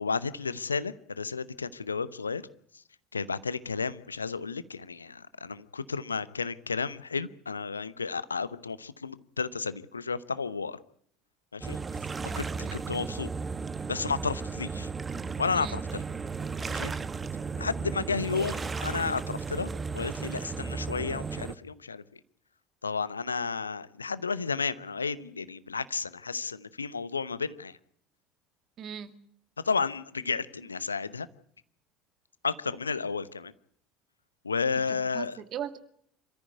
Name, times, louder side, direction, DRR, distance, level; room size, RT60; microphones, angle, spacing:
voice 1, 0.0-2.5 3.1-10.8 11.5-11.8 12.4-13.3 13.9-14.9 15.4-16.0 16.7-16.9 17.6-22.2 22.8-27.8 29.6-31.3 32.4-33.5 34.4-35.4, left 5 dB, 85° left, 17 dB, 0.9 m, -32 dB
sound 1, 11.6-21.5, right 5 dB, 25° right, 1.2 m, -35 dB
voice 2, 28.8-29.1 34.9-35.8, right 9 dB, 45° right, 10 dB, 2.2 m, -39 dB
27.0 x 14.0 x 9.5 m, 0.66 s
figure-of-eight pair, 65°, 0 cm